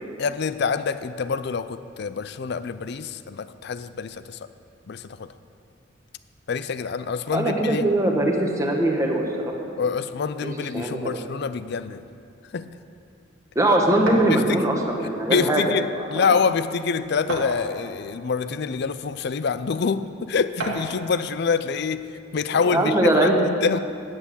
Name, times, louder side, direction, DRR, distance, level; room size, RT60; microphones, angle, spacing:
voice 1, 0.2-4.4 4.9-5.3 6.5-7.9 9.8-12.0 12.5-12.7 14.3-14.6 15.3-22.1 22.3-23.8, left 5 dB, 55° left, 13 dB, 0.4 m, -26 dB
voice 2, 7.3-9.6 10.4-11.2 13.5-15.6 16.1-16.3 22.6-23.4, right 1 dB, 15° right, 1 dB, 1.2 m, -21 dB
sound 1, 14.1-14.3 15.5-15.6 16.0-16.1 17.3-17.9 18.8-18.9 20.6-21.0, right 2 dB, 80° right, 1.6 m, -30 dB
9.6 x 8.1 x 8.4 m, 2.4 s
head